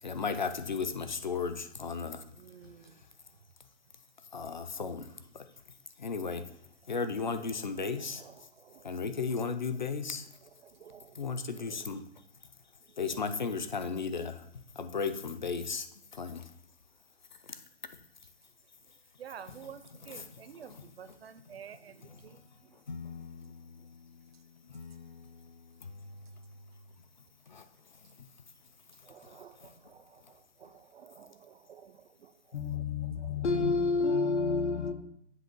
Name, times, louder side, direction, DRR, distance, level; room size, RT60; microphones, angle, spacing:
voice 1, 0.0-2.3 2.6-3.1 4.3-6.6 6.9-8.5 8.8-10.3 11.1-12.2 13.0-16.5 17.3-17.6 17.9-18.0 19.5-21.2 21.5-21.6 22.0-26.7 27.5-28.5 29.1-29.9 30.2-30.3, left 5 dB, 45° left, 0.4 m, -37 dB
voice 2, 2.4-2.9 8.6-8.9 10.7-11.2 11.6-11.8 19.2-22.8 29.0-32.3 32.7-32.9 33.3-33.4, right 8 dB, 60° right, 0.6 m, -51 dB
voice 3, 32.5-34.9, left 4 dB, 75° left, 0.9 m, -29 dB
7.8 x 2.9 x 6.0 m
hypercardioid pair, 175°, 35 cm